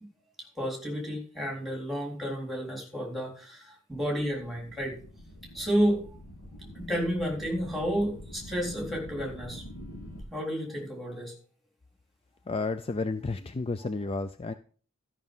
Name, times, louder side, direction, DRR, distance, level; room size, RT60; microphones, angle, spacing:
voice 1, 0.6-5.0 5.5-6.1 6.7-9.6 10.3-11.3, equal, ahead, -1 dB, 3.8 m, -31 dB
sound 1, 3.9-10.2, equal, 70° left, 3.3 m, -46 dB
voice 2, 12.5-14.5, left 3 dB, 25° left, 11 dB, 0.4 m, -31 dB
13.0 x 6.2 x 5.5 m, 0.42 s
head